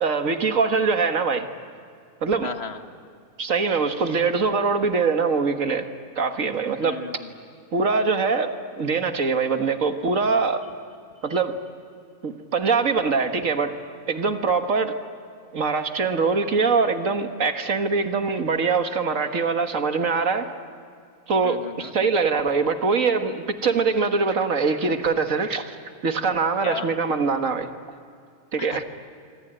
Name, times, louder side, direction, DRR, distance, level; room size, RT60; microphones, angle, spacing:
voice 1, 0.0-1.5 2.2-2.5 3.4-5.9 6.2-7.0 7.7-10.7 11.2-11.6 12.2-13.8 14.1-14.9 15.5-20.5 21.3-25.8 26.0-27.7 28.5-28.8, right 4 dB, 60° right, 7 dB, 1.9 m, -23 dB
voice 2, 2.4-2.8 6.8-7.3 21.4-21.9 26.6-26.9 28.6-28.8, left 4 dB, 45° left, 7 dB, 1.7 m, -34 dB
26.0 x 25.5 x 9.0 m, 2.3 s
omnidirectional pair, 1.5 m